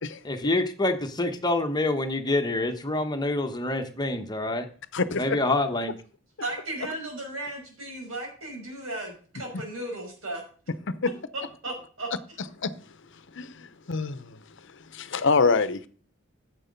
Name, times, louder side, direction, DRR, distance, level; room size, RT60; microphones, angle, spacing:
voice 1, 0.2-4.6 5.2-6.0, left 2 dB, 20° left, 6 dB, 1.1 m, -26 dB
voice 2, 4.9-5.2 11.0-11.1 12.6-12.7 13.3-14.4 14.9-15.8, left 4 dB, 65° left, 13 dB, 0.8 m, -25 dB
voice 3, 6.4-10.4 11.3-12.1, right 1 dB, 85° right, 1 dB, 5.6 m, -35 dB
10.0 x 7.6 x 5.3 m, 0.42 s
head